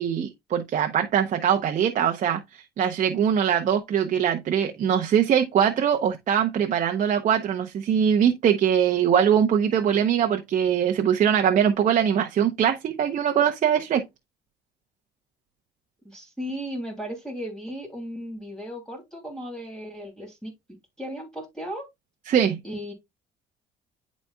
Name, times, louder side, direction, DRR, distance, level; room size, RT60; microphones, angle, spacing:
voice 1, 0.0-14.0 22.3-22.6, right 8 dB, 50° right, 0.8 m, -22 dB
voice 2, 16.0-20.5 21.0-21.9 22.6-22.9, equal, 5° left, 2.8 m, -35 dB
10.5 x 4.1 x 2.3 m
cardioid pair, 110°, 17 cm